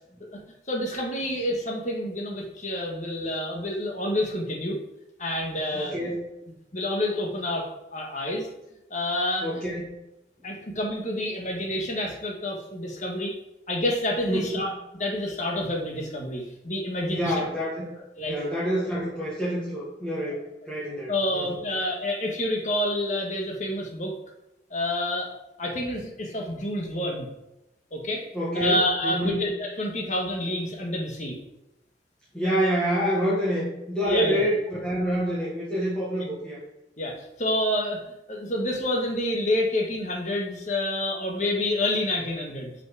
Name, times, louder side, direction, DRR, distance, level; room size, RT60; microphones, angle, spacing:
voice 1, 0.7-4.8 5.2-6.0 6.7-7.6 7.9-8.5 8.9-9.4 10.4-13.4 13.7-14.7 15.0-17.4 18.2-18.4 21.1-24.1 24.7-25.3 25.6-27.3 27.9-28.3 28.5-31.4 34.0-34.4 36.0-36.1 37.0-42.7, left 1 dB, 40° left, 0 dB, 1.5 m, -28 dB
voice 2, 5.7-6.2 9.4-10.0 10.4-10.5 14.3-14.6 17.1-21.6 28.3-29.4 32.3-36.6, equal, 5° left, -9 dB, 1.6 m, -27 dB
5.9 x 5.8 x 4.9 m, 0.92 s
head